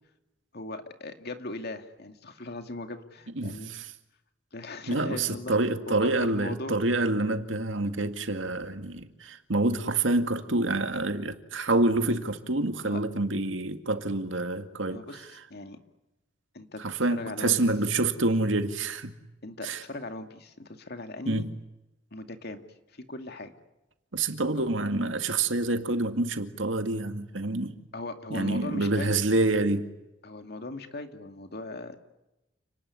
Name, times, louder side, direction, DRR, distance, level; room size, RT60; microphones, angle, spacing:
voice 1, 0.5-3.9 4.5-5.5 5.9-6.8 12.8-13.0 14.9-15.2 15.5-15.8 16.5-16.8 17.1-17.6 19.4-21.5 22.1-22.6 22.9-23.5 24.6-24.7 27.9-29.2 30.2-32.0, left 2 dB, 60° left, 6 dB, 2.4 m, -39 dB
voice 2, 3.3-3.9 4.9-15.3 16.8-19.2 19.6-19.8 21.3-21.5 24.1-27.8 28.3-29.9, right 2 dB, 80° right, 7 dB, 2.2 m, -27 dB
30.0 x 19.5 x 9.8 m, 0.96 s
head